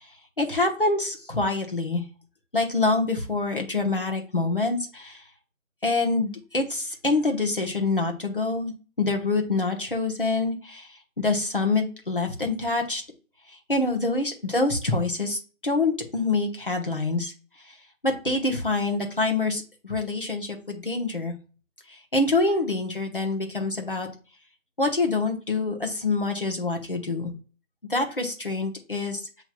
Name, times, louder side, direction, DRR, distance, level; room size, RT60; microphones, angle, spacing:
voice 1, 0.4-2.0 2.5-5.2 5.8-13.0 13.7-17.3 18.0-21.3 21.9-24.1 24.8-27.3 27.9-29.3, left 3 dB, 40° left, 2 dB, 0.9 m, -26 dB
7.6 x 3.0 x 2.2 m, 0.35 s
figure-of-eight pair, 180°, 41 cm